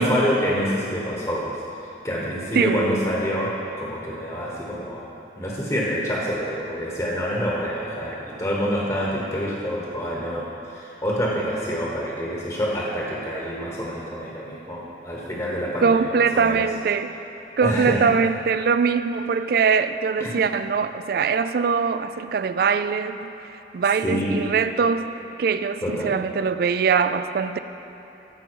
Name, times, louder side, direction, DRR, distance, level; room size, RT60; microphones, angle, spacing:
voice 1, 0.0-1.6 2.0-5.0 5.3-16.6 17.6-18.1 20.2-20.4 24.0-24.5 25.8-26.1, equal, 20° left, -4 dB, 1.0 m, -27 dB
voice 2, 2.5-2.9 15.8-17.1 17.6-23.3 23.7-27.6, right 5 dB, 55° right, 11 dB, 0.3 m, -22 dB
15.0 x 5.2 x 4.6 m, 2.8 s
head